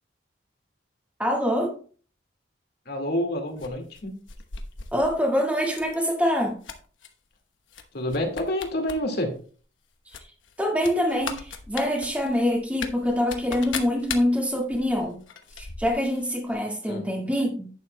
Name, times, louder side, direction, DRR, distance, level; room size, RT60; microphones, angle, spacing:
voice 1, 1.2-1.8 4.9-6.6 10.6-15.2 15.6-17.7, equal, 10° right, 1.8 m, -25 dB
voice 2, 2.9-4.1 7.9-9.4 16.8-17.0, left 1 dB, 55° left, 1.9 m, -28 dB
sound 1, 3.6-5.2 5.7-6.0 6.3-7.1 7.7-7.8 8.1-9.0 9.3-9.4 10.1-16.2 16.5-16.6, left 6 dB, 85° left, 1.0 m, -38 dB
11.0 x 8.7 x 2.2 m
head